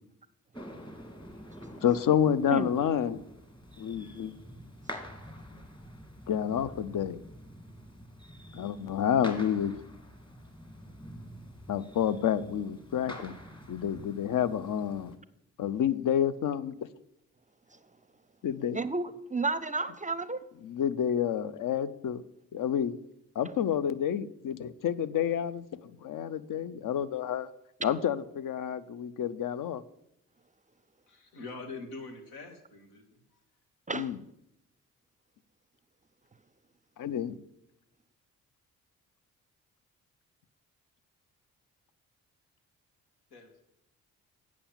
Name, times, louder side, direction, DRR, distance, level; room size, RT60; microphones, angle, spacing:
sound 1, 0.5-15.2, equal, 10° left, 2.2 m, -47 dB
voice 1, 1.8-3.2 3.8-4.4 6.3-7.2 8.5-9.7 11.7-13.4 13.7-15.2 15.6-16.8 18.4-18.8 20.6-22.2 22.5-23.0 23.4-27.5 27.8-29.8 33.9-34.2 37.0-37.4, left 9 dB, 55° left, 15 dB, 0.7 m, -29 dB
voice 2, 18.7-20.4 33.9-34.1, right 3 dB, 20° right, 15 dB, 0.6 m, -31 dB
voice 3, 31.1-33.0 43.3-43.6, left 3 dB, 85° left, 5 dB, 1.6 m, -44 dB
8.7 x 6.1 x 7.3 m, 0.81 s
hypercardioid pair, 45°, 38 cm